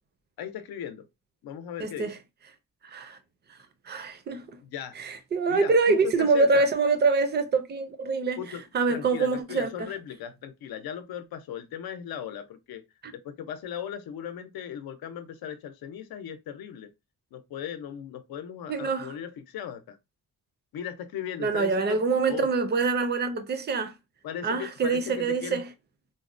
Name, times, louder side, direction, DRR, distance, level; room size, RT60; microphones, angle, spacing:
voice 1, 0.4-1.0 1.4-2.1 4.7-4.9 5.5-6.7 8.4-8.6 8.9-12.8 13.1-16.9 17.3-20.0 20.7-22.0 22.3-22.5 24.2-25.6, left 9 dB, 85° left, 0.6 m, -37 dB
voice 2, 1.8-2.2 2.8-3.2 3.9-4.6 4.9-8.4 8.7-9.9 13.0-13.1 18.7-19.2 21.4-23.9 24.4-25.7, right 4 dB, 30° right, 0.4 m, -25 dB
3.9 x 2.1 x 2.5 m
wide cardioid pair, 175°, 36 cm